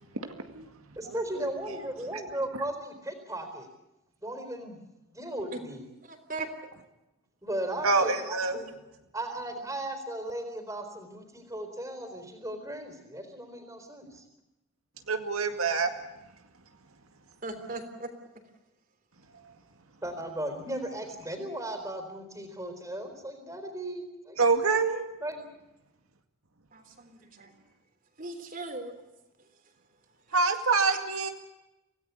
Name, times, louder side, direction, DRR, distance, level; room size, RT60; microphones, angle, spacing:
voice 1, 0.2-0.7 1.0-1.4 2.1-2.2 7.8-8.6 15.1-15.9 24.4-25.0 30.3-31.3, right 4 dB, 80° right, 6 dB, 2.1 m, -26 dB
voice 2, 1.0-3.7 4.2-4.8 5.1-5.9 7.4-8.7 9.1-14.2 20.0-24.4 25.2-25.5, right 1 dB, 15° right, 7 dB, 4.1 m, -36 dB
voice 3, 6.1-6.5 17.4-18.1 26.7-27.5 28.2-29.0, right 2 dB, 40° right, 7 dB, 3.5 m, -38 dB
26.5 x 17.5 x 8.3 m, 0.97 s
head